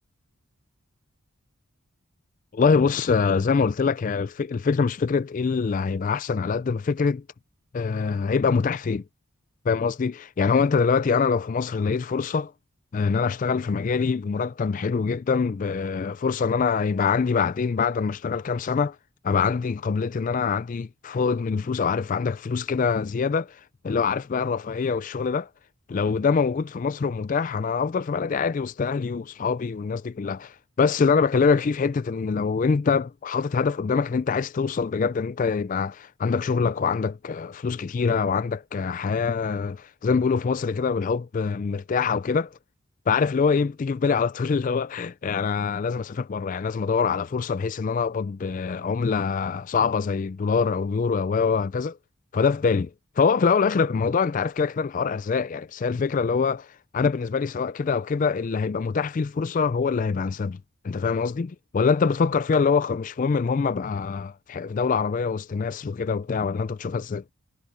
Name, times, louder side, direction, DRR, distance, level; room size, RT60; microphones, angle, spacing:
voice 1, 2.5-7.2 7.7-9.0 9.7-12.5 12.9-19.0 19.2-25.5 25.9-42.6 43.1-52.0 52.3-52.9 53.2-60.6 60.8-67.2, left 5 dB, 35° left, 0.3 m, -24 dB
head